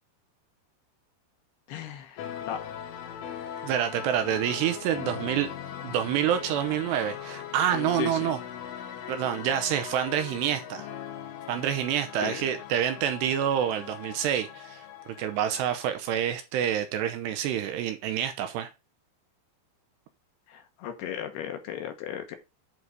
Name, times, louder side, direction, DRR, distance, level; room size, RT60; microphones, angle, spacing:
voice 1, 1.7-2.6 8.0-8.2 12.2-12.4 20.5-22.4, left 10 dB, 70° left, 2.7 m, -36 dB
sound 1, 2.2-15.9, left 9 dB, 90° left, 4.0 m, -40 dB
voice 2, 3.6-5.5 5.8-8.4 9.1-10.9 11.5-18.7, right 10 dB, 80° right, 2.7 m, -27 dB
11.0 x 4.0 x 4.8 m
omnidirectional pair, 5.5 m